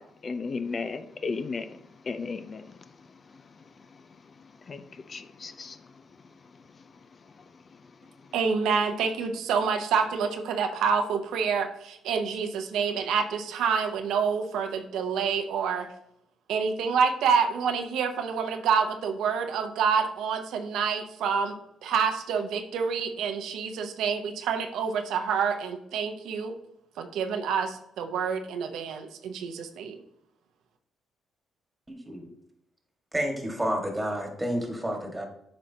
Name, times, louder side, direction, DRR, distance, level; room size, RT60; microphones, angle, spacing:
voice 1, 0.0-1.8 2.0-2.8 3.3-3.4 4.7-5.9, left 4 dB, 40° left, 11 dB, 0.4 m, -35 dB
voice 2, 8.3-15.9 16.5-26.5 27.0-30.0, right 6 dB, 85° right, 5 dB, 0.7 m, -27 dB
voice 3, 31.9-32.3 33.1-35.2, equal, 10° right, 2 dB, 1.7 m, -30 dB
8.7 x 5.2 x 2.8 m, 0.76 s
cardioid pair, 90°, 0 cm